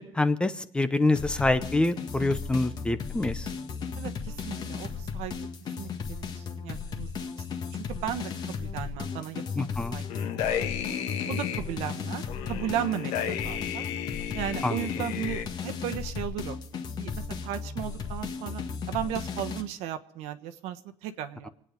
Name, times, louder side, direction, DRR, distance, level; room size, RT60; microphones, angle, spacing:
voice 1, 0.0-3.5 9.6-10.0 14.6-14.9, left 2 dB, 10° left, 11 dB, 0.7 m, -26 dB
sound 1, 1.2-19.6, left 6 dB, 35° left, 1.6 m, -35 dB
voice 2, 4.0-5.3 5.8-7.1 7.4-7.5 7.7-10.1 10.4-10.9 11.3-13.8 14.3-16.6 17.0-21.5, right 10 dB, 75° right, 9 dB, 1.3 m, -36 dB
sound 2, 10.1-11.6 12.3-15.4, left 9 dB, 75° left, 1.7 m, -33 dB
26.0 x 9.3 x 5.2 m, 0.72 s
cardioid pair, 160°, 11 cm